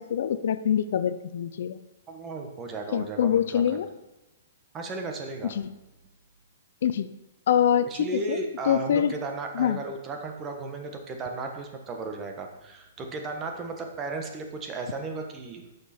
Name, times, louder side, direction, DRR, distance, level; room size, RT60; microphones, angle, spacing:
voice 1, 0.0-1.8 2.9-3.9 5.5-5.7 6.8-7.1 7.5-8.4 8.7-9.1 9.5-9.8, left 9 dB, 65° left, 13 dB, 0.5 m, -25 dB
voice 2, 2.1-3.8 4.7-5.5 7.9-15.6, right 3 dB, 20° right, 4 dB, 1.3 m, -35 dB
11.0 x 6.6 x 4.4 m, 0.99 s
hypercardioid pair, 150°, 0 cm